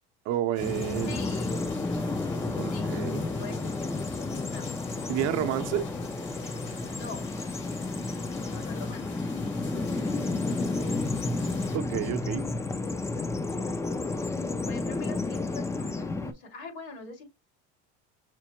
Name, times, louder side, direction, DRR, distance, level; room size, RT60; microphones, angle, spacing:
voice 1, 0.3-1.2 2.6-3.3 5.1-5.9 11.7-12.5, right 12 dB, 60° right, 0.7 m, -30 dB
sound 1, 0.5-11.8, left 5 dB, 40° left, 1.0 m, -48 dB
Bird vocalization bird call bird song, 0.6-16.3, left 3 dB, 10° left, 0.4 m, -31 dB
voice 2, 1.0-1.6 2.6-3.0 3.2-4.8 5.7-5.9 6.9-7.3 8.5-9.4 11.5-11.9 12.2-12.5 13.0-13.9 14.7-17.2, left 4 dB, 75° left, 2.4 m, -44 dB
5.9 x 2.1 x 2.9 m
supercardioid pair, 115°, 29 cm